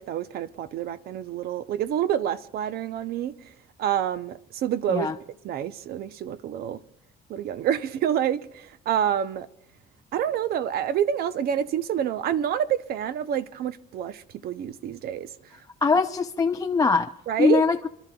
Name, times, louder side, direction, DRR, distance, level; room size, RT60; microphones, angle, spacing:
voice 1, 0.0-3.5 3.8-5.1 5.4-6.8 7.3-9.5 10.1-15.3 17.3-17.6, right 10 dB, 65° right, 0.7 m, -27 dB
voice 2, 15.8-17.1 17.4-17.9, left 5 dB, 20° left, 0.4 m, -22 dB
28.5 x 12.0 x 2.3 m
cardioid pair, 110°, 17 cm